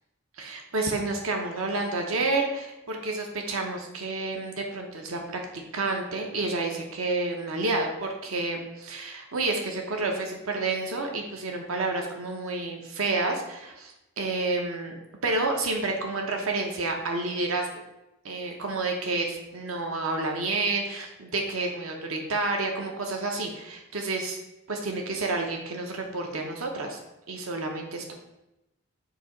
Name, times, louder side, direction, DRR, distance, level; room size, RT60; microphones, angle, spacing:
voice 1, 0.4-5.2 5.5-15.0 15.2-17.7 18.2-24.4 24.7-27.0 27.3-28.1, right 3 dB, 75° right, 2 dB, 0.9 m, -29 dB
6.9 x 2.8 x 5.2 m, 0.93 s
head